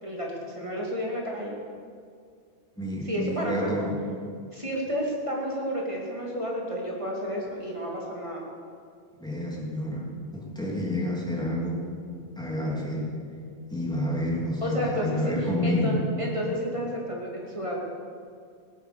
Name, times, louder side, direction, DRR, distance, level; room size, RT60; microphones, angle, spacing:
voice 1, 0.0-1.5 3.0-3.7 4.5-8.4 14.6-17.8, equal, 25° right, -2 dB, 2.6 m, -31 dB
voice 2, 2.8-3.9 9.2-10.1 10.3-11.9 12.4-13.1 13.7-16.0, left 1 dB, 5° left, -4 dB, 3.1 m, -29 dB
17.5 x 9.1 x 6.9 m, 2.2 s
omnidirectional pair, 1.2 m